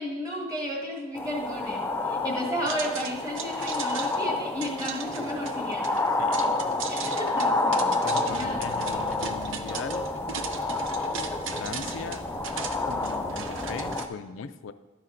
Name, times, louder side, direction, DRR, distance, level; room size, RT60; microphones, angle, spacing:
voice 1, 0.0-6.3 6.9-8.0 8.2-8.9, equal, 20° right, -2 dB, 1.6 m, -33 dB
sound 1, 1.1-14.1, left 2 dB, 10° left, 0.4 m, -29 dB
sound 2, 2.7-14.1, right 6 dB, 75° right, 0.7 m, -38 dB
voice 2, 6.2-6.7 8.0-10.1 11.5-12.2 12.8-14.7, left 5 dB, 75° left, 11 dB, 0.4 m, -39 dB
sound 3, 8.3-14.0, equal, 55° right, 2.9 m, -43 dB
12.5 x 9.8 x 2.6 m, 1.2 s
head